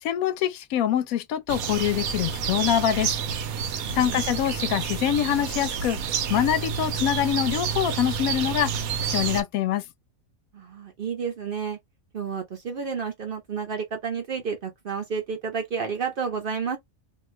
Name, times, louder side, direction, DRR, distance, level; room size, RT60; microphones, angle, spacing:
voice 1, 0.0-3.2 3.9-6.0 6.3-8.7 9.1-9.8, left 11 dB, 90° left, 1.0 m, -25 dB
sound 1, 1.5-9.4, right 7 dB, 90° right, 1.1 m, -29 dB
voice 2, 3.8-4.2 10.5-11.8 12.1-16.8, right 6 dB, 55° right, 0.7 m, -31 dB
2.7 x 2.3 x 3.0 m
omnidirectional pair, 1.4 m